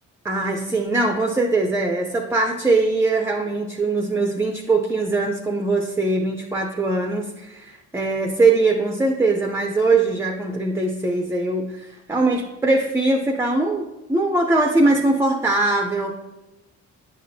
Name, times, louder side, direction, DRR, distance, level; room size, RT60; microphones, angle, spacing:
voice 1, 0.2-16.1, right 2 dB, 10° right, 3 dB, 0.5 m, -21 dB
9.3 x 5.1 x 2.7 m, 1.0 s
cardioid pair, 90°, 30 cm